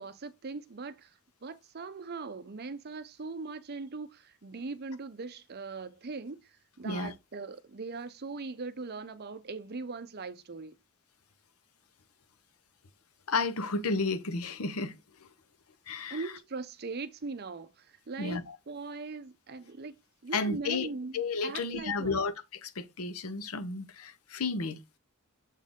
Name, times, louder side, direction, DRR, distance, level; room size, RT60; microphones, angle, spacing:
voice 1, 0.0-10.7 16.1-18.4 18.7-19.9 20.2-22.2, right 4 dB, 50° right, 0.7 m, -40 dB
voice 2, 13.3-14.9 15.9-16.2 18.2-18.5 20.3-20.9 21.1-22.3 22.6-24.8, left 3 dB, 85° left, 0.8 m, -32 dB
7.3 x 4.1 x 3.6 m
head